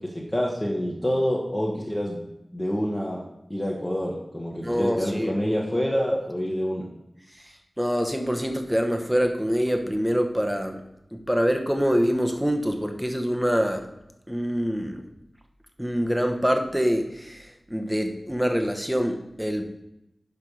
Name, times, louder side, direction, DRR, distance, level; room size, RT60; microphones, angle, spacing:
voice 1, 0.1-2.2 2.5-3.2 3.5-6.9, equal, 15° left, -4 dB, 1.3 m, -27 dB
voice 2, 4.6-5.3 7.4-10.8 11.1-13.9 14.3-15.0 15.8-19.6, equal, 5° right, 4 dB, 1.1 m, -25 dB
10.5 x 3.5 x 6.4 m, 0.87 s
wide cardioid pair, 80°, 0 cm